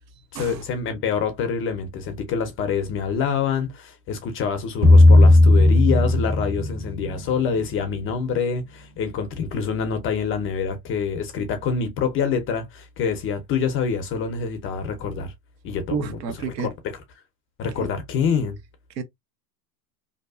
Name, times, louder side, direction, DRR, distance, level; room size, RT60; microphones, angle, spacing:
voice 1, 0.3-15.3 15.6-17.0 17.6-18.6, left 6 dB, 25° left, 0.5 m, -26 dB
sound 1, 4.8-7.9, left 2 dB, 10° right, 0.7 m, -15 dB
voice 2, 15.9-16.7 17.8-17.9 19.0-19.1, right 5 dB, 75° right, 0.8 m, -29 dB
2.7 x 2.3 x 2.2 m
hypercardioid pair, 110°, 49 cm